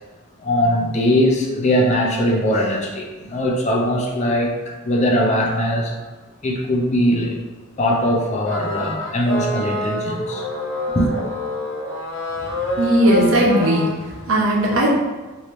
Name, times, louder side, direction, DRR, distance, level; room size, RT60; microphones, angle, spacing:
voice 1, 0.4-5.9 6.4-7.4 7.8-10.4 10.9-11.1, equal, 35° left, 0 dB, 0.5 m, -20 dB
sound 1, 8.5-13.9, left 1 dB, 70° left, 0.7 m, -27 dB
voice 2, 12.7-15.0, right 1 dB, 85° right, -4 dB, 0.9 m, -17 dB
3.3 x 2.7 x 3.0 m, 1.2 s
head